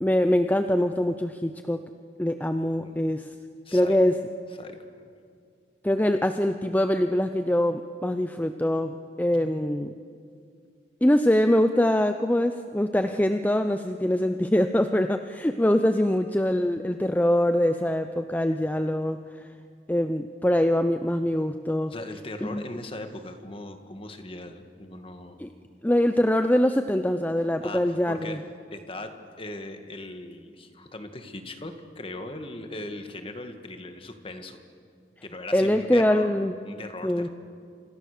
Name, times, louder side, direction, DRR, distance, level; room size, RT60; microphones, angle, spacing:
voice 1, 0.0-1.8 2.2-3.3 3.7-4.2 5.8-9.9 11.0-19.4 19.9-21.9 22.4-22.6 25.4-25.5 25.8-28.4 35.5-36.5 37.0-37.3, left 1 dB, 10° left, 8 dB, 0.6 m, -23 dB
voice 2, 3.7-4.0 4.6-5.0 21.9-25.4 27.6-28.4 28.7-34.6 35.2-37.3, left 2 dB, 30° left, 7 dB, 1.9 m, -39 dB
28.0 x 26.5 x 6.8 m, 2.3 s
head